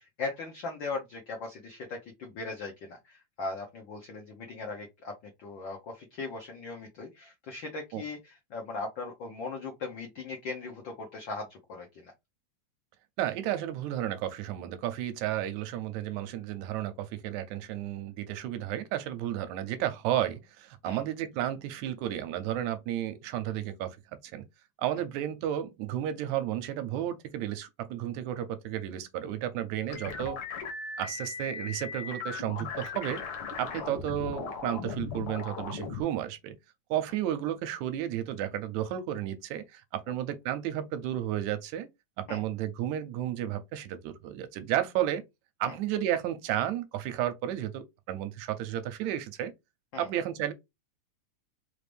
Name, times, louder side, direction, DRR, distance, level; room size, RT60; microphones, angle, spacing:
voice 1, 0.0-12.1 20.8-21.0 33.7-33.9 42.3-42.4 45.7-45.8 49.9-50.1, left 3 dB, 85° left, 1.0 m, -39 dB
voice 2, 13.2-24.0 24.2-24.5 24.8-30.4 31.0-33.2 33.6-36.6 36.9-41.9 42.2-45.2 45.6-49.5 50.0-50.5, right 11 dB, 80° right, 1.9 m, -32 dB
sound 1, 29.9-36.0, left 5 dB, 65° left, 1.5 m, -38 dB
4.9 x 2.5 x 3.3 m
omnidirectional pair, 3.4 m